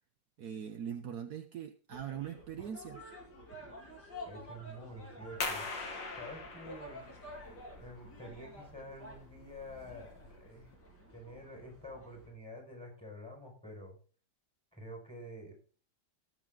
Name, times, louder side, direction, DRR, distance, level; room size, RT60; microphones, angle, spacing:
voice 1, 0.4-3.0, right 8 dB, 65° right, 7 dB, 1.3 m, -41 dB
sound 1, 1.9-12.3, equal, 65° left, 4.9 m, -51 dB
voice 2, 4.3-5.7 6.2-7.0 7.8-10.7 11.1-14.0 14.7-15.5, equal, 5° left, 2 dB, 5.2 m, -48 dB
sound 2, 5.4-10.7, left 3 dB, 85° left, 2.9 m, -43 dB
18.5 x 7.8 x 3.8 m, 0.40 s
omnidirectional pair, 1.9 m